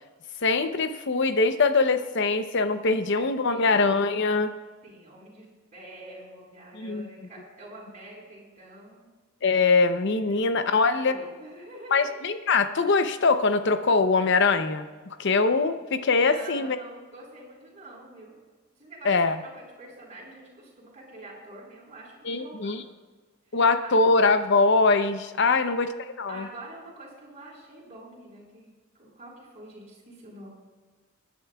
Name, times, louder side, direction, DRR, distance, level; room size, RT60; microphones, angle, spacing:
voice 1, 0.4-4.5 6.8-7.1 9.4-11.2 11.9-14.9 15.2-16.8 19.0-19.4 22.2-22.8 23.5-25.9 26.2-26.4, left 3 dB, 55° left, 9 dB, 0.7 m, -22 dB
voice 2, 3.5-4.1 4.8-9.1 10.3-12.3 16.2-18.4 18.8-22.8 23.5-24.0 26.3-28.7 28.9-30.5, right 1 dB, 35° right, -4 dB, 4.4 m, -46 dB
24.0 x 10.0 x 2.4 m, 1.4 s
head